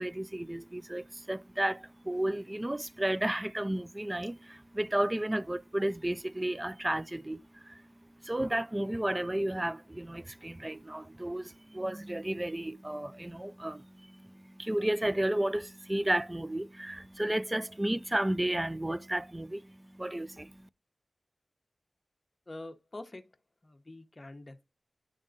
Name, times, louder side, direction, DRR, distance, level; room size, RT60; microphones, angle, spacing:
voice 1, 0.0-7.8 8.2-20.6, right 1 dB, 20° right, 0.4 m, -33 dB
voice 2, 22.5-23.2 23.6-24.6, left 2 dB, 35° left, 0.8 m, -45 dB
10.0 x 3.7 x 2.6 m
wide cardioid pair, 85°, 0 cm